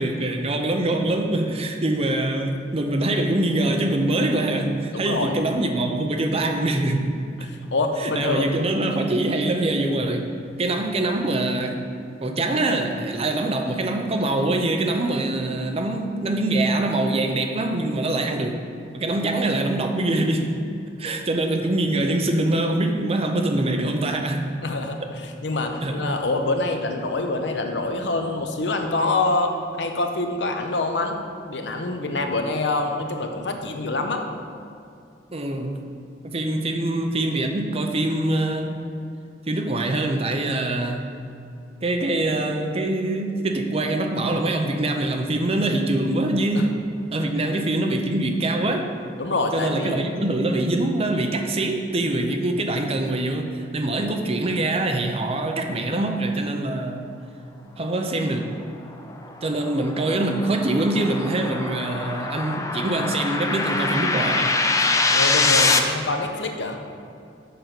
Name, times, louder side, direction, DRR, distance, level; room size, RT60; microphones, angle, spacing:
voice 1, 0.0-7.2 8.0-10.3 10.6-11.8 12.2-18.6 18.9-20.6 21.0-24.5 25.0-25.1 25.8-26.1 35.3-35.8 36.2-38.9 39.5-41.1 41.8-46.8 47.1-48.9 49.5-57.1 57.8-58.5 59.4-65.0, right 2 dB, 35° right, 4 dB, 0.6 m, -24 dB
voice 2, 4.9-5.4 7.4-8.5 24.6-29.5 29.8-31.1 31.5-34.2 46.5-46.6 47.4-47.5 49.2-50.0 65.1-66.8, left 2 dB, 75° left, 5 dB, 0.8 m, -26 dB
sound 1, 58.9-65.8, left 3 dB, 20° left, 0.4 m, -24 dB
6.8 x 5.2 x 5.9 m, 2.5 s
head